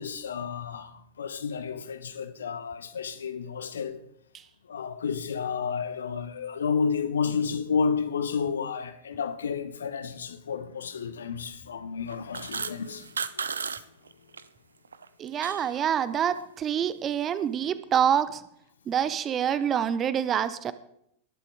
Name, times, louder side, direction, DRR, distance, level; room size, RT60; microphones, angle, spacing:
voice 1, 0.0-4.0 4.7-13.5, left 6 dB, 70° left, 1.1 m, -31 dB
sound 1, 12.1-14.4 14.8-15.7, right 5 dB, 70° right, 0.5 m, -34 dB
voice 2, 15.2-18.4 18.9-20.7, right 9 dB, 25° right, 0.8 m, -26 dB
19.0 x 11.5 x 3.6 m
figure-of-eight pair, 90°, 0 cm